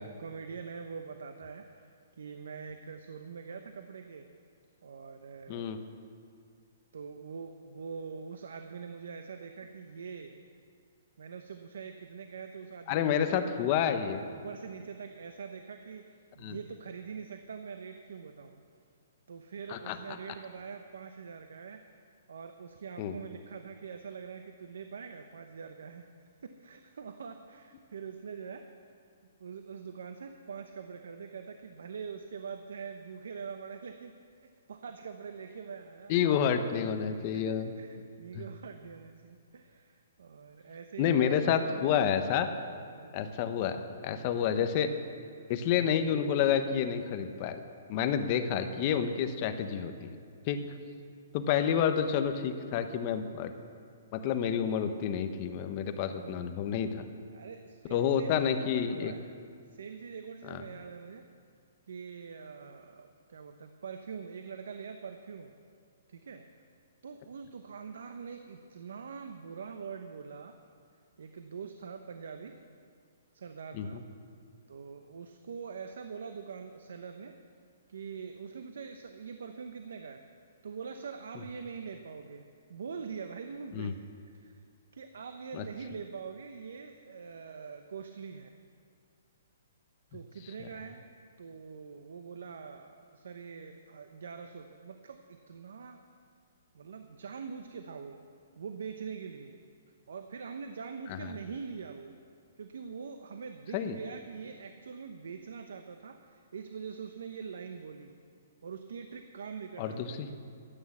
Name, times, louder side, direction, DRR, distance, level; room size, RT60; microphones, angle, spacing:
voice 1, 0.0-4.3 4.8-5.7 6.9-10.4 11.2-13.4 14.3-18.6 19.3-21.9 22.3-28.7 29.4-34.1 34.4-36.1 36.4-36.6 37.3-42.1 42.9-43.2 50.6-50.9 56.1-56.5 57.3-59.2 59.7-61.3 61.9-65.6 66.1-66.4 67.0-70.6 71.2-72.6 73.3-74.0 74.7-77.4 77.9-80.2 80.6-84.6 84.9-88.5 90.1-91.1 91.4-96.0 96.7-98.2 98.6-99.6 100.1-102.1 102.6-108.2 108.6-110.4, right 6 dB, 75° right, 7 dB, 0.8 m, -44 dB
voice 2, 5.5-5.8 12.9-14.2 16.4-16.6 19.7-20.0 23.0-23.1 36.1-37.7 38.3-38.4 41.0-42.5 43.1-44.9 45.5-47.6 47.9-50.1 50.5-50.6 51.3-53.5 54.1-57.0 57.9-59.1 60.5-60.6 73.7-74.0 83.7-83.9 85.5-85.6 101.1-101.3 103.7-103.9 109.8-110.3, left 8 dB, 30° left, 8 dB, 0.8 m, -29 dB
13.5 x 8.8 x 7.2 m, 2.2 s
hypercardioid pair, 170°, 0 cm